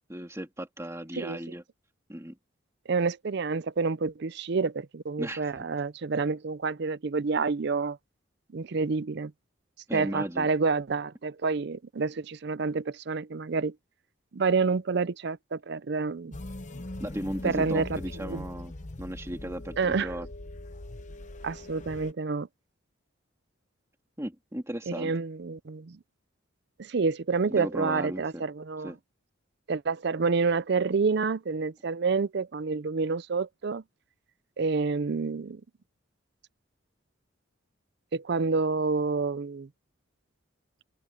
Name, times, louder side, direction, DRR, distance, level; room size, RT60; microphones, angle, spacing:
voice 1, 0.1-1.6 2.1-2.4 5.2-5.6 9.9-10.5 17.0-18.7 19.0-20.3 24.2-25.1 27.5-28.4 28.8-29.0, right 1 dB, 15° right, 2.4 m, -36 dB
voice 2, 2.9-8.0 8.5-9.3 9.9-13.7 14.3-16.4 17.4-18.4 19.8-20.1 21.4-22.5 24.9-26.0 26.8-28.9 29.7-33.8 34.6-35.6 38.1-39.7, right 4 dB, 55° right, 0.5 m, -28 dB
sound 1, 16.3-22.1, left 1 dB, 35° left, 0.9 m, -41 dB
head